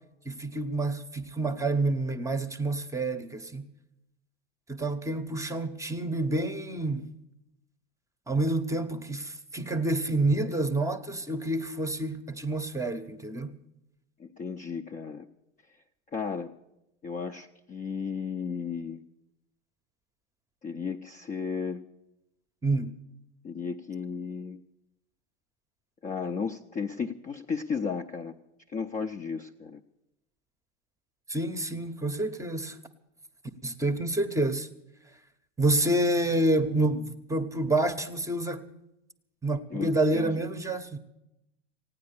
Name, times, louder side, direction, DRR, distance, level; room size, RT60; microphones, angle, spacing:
voice 1, 0.2-3.7 4.7-7.1 8.3-13.6 22.6-23.0 31.3-32.8 33.6-34.7 35.6-38.6 39.4-41.0, right 2 dB, 10° right, 0.8 m, -28 dB
voice 2, 14.2-15.3 16.1-16.5 17.0-19.0 20.6-21.8 23.4-24.6 26.0-28.3 28.7-29.8 39.7-40.4, left 5 dB, 20° left, 0.5 m, -34 dB
16.0 x 9.7 x 8.4 m
hypercardioid pair, 110°, 39 cm